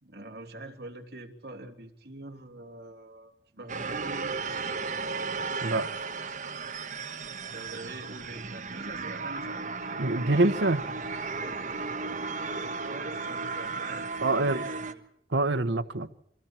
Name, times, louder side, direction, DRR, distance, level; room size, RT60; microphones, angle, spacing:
voice 1, 0.0-4.8 7.5-10.0 12.8-14.1 14.4-15.0, right 2 dB, 65° right, 3.0 m, -44 dB
sound 1, 3.7-14.9, right 4 dB, 45° right, 1.4 m, -35 dB
voice 2, 10.0-10.8 14.2-14.6 15.3-16.1, right 2 dB, 90° right, 1.1 m, -25 dB
29.5 x 24.0 x 4.5 m
head